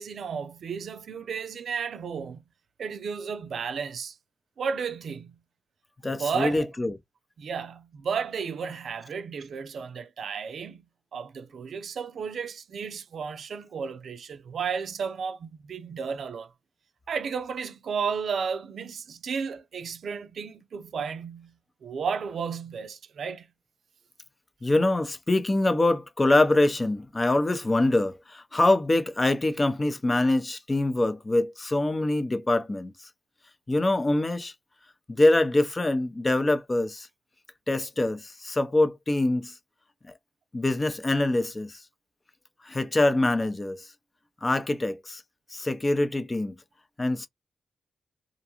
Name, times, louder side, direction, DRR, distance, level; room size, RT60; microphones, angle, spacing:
voice 1, 0.0-2.4 2.8-4.2 4.6-5.4 6.2-6.7 7.4-10.9 11.1-16.5 17.1-21.6 21.8-23.5, right 6 dB, 70° right, 0.4 m, -33 dB
voice 2, 6.0-6.9 24.6-32.9 33.7-34.5 35.1-37.1 37.7-39.5 40.1-40.2 40.5-41.8 42.6-43.9 44.4-45.2 45.5-46.6 47.0-47.3, left 2 dB, 30° left, 0.6 m, -24 dB
2.5 x 2.3 x 2.8 m
supercardioid pair, 45°, 0 cm